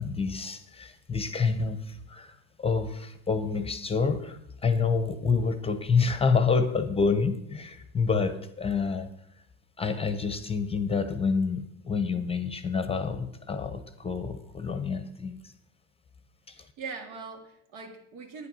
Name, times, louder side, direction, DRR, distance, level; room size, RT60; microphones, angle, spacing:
voice 1, 0.0-9.1 9.8-15.5 16.5-16.7, left 5 dB, 15° left, 11 dB, 0.7 m, -28 dB
voice 2, 16.5-18.5, right 4 dB, 80° right, 4 dB, 2.3 m, -41 dB
9.8 x 9.2 x 5.5 m, 0.77 s
supercardioid pair, 125°, 37 cm